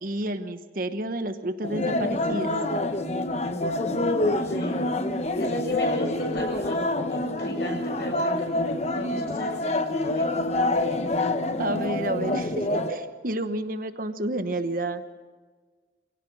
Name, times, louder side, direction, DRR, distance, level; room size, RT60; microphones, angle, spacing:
voice 1, 0.0-2.5 11.6-15.0, right 1 dB, 50° right, 9 dB, 1.1 m, -30 dB
sound 1, 1.6-12.9, left 2 dB, 35° left, 1.0 m, -26 dB
voice 2, 3.9-4.8 5.4-6.8 7.1-8.3 8.9-10.6, left 1 dB, 65° left, 1 dB, 7.9 m, -37 dB
25.0 x 17.0 x 6.2 m, 1.4 s
head